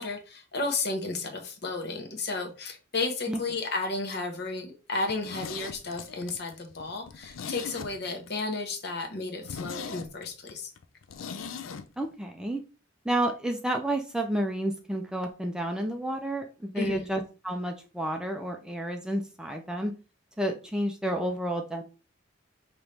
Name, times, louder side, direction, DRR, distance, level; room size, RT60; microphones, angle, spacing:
voice 1, 0.0-10.7 16.8-17.0, left 3 dB, 55° left, 3 dB, 1.1 m, -33 dB
Zipper (clothing), 5.1-8.3 8.6-8.7 9.1-9.2 9.4-11.9 12.1-12.2, left 6 dB, 90° left, 0.5 m, -40 dB
voice 2, 12.0-12.6 13.0-19.9 20.4-21.8, right 1 dB, 5° right, 3 dB, 0.4 m, -30 dB
5.4 x 3.0 x 3.3 m, 0.32 s
head